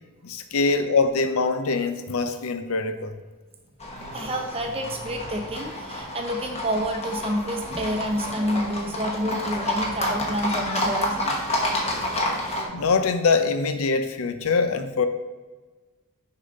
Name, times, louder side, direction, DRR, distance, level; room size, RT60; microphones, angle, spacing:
voice 1, 0.2-3.1 12.7-15.1, left 4 dB, 75° left, 0.5 m, -23 dB
Livestock farm animals working animals, 3.8-12.7, left 1 dB, 30° left, 1.0 m, -29 dB
voice 2, 4.1-11.3, equal, 25° right, 0.7 m, -29 dB
6.7 x 5.6 x 3.8 m
head